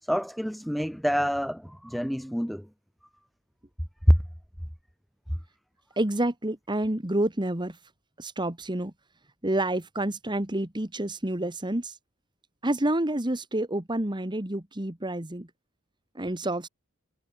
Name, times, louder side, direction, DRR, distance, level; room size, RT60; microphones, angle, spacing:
voice 1, 0.0-2.7 4.1-4.2, equal, ahead, 3.1 m, -25 dB
voice 2, 6.0-7.8 8.2-8.9 9.4-12.0 12.6-15.5 16.1-16.7, right 1 dB, 20° right, 1.8 m, -28 dB
head